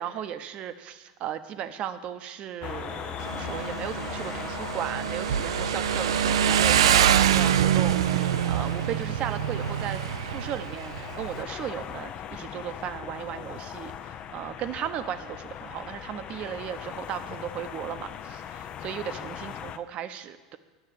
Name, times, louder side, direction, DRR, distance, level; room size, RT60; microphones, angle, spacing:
voice 1, 0.0-20.6, right 9 dB, 45° right, 11 dB, 0.8 m, -36 dB
sound 1, 2.6-19.8, left 9 dB, 40° left, 0.6 m, -39 dB
Motorcycle, 3.2-11.4, right 10 dB, 85° right, 0.4 m, -25 dB
10.5 x 6.5 x 7.5 m, 1.3 s
hypercardioid pair, 100°, 3 cm